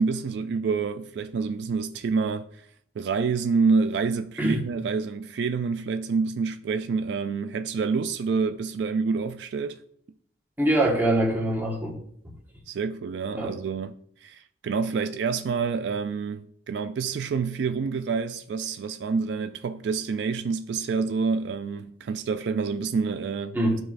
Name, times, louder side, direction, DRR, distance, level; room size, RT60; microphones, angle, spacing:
voice 1, 0.0-2.7 3.0-9.8 12.7-14.0 14.2-23.6, right 5 dB, 65° right, 0.3 m, -27 dB
voice 2, 10.6-12.0 13.4-13.5 23.5-23.8, right 1 dB, 10° right, 1.4 m, -23 dB
12.5 x 4.6 x 2.5 m
head